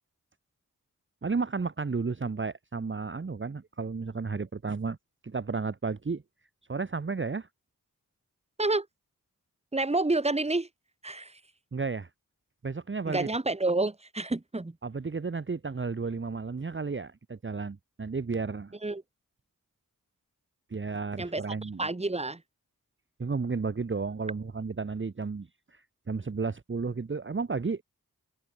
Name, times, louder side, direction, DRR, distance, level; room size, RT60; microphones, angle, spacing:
voice 1, 1.2-5.0 5.2-6.2 6.7-7.5 11.7-12.1 12.6-13.3 14.8-18.7 20.7-21.9 23.2-27.8, right 4 dB, 35° right, 1.0 m, -33 dB
voice 2, 9.7-10.7 11.0-11.4 13.0-14.7 18.8-19.0 21.2-21.4 21.8-22.4, right 2 dB, 20° right, 1.4 m, -28 dB
cardioid pair, 45°, 34 cm